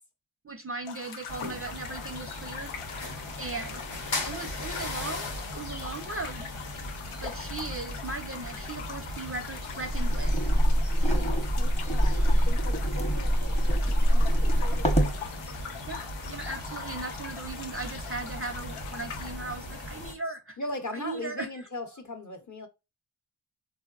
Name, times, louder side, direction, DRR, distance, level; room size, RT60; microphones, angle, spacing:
voice 1, 0.4-2.7 3.4-3.8 4.2-6.5 7.2-10.3 15.9-20.6 20.9-21.5, right 3 dB, 30° right, 0.5 m, -38 dB
sound 1, 0.8-19.3, left 7 dB, 85° left, 0.6 m, -43 dB
sound 2, 1.3-20.1, left 2 dB, 60° left, 0.9 m, -38 dB
sound 3, 9.9-15.2, equal, 15° left, 0.9 m, -24 dB
voice 2, 11.2-15.3 20.6-22.7, left 2 dB, 35° left, 0.9 m, -40 dB
3.8 x 2.1 x 2.3 m
cardioid pair, 40°, 49 cm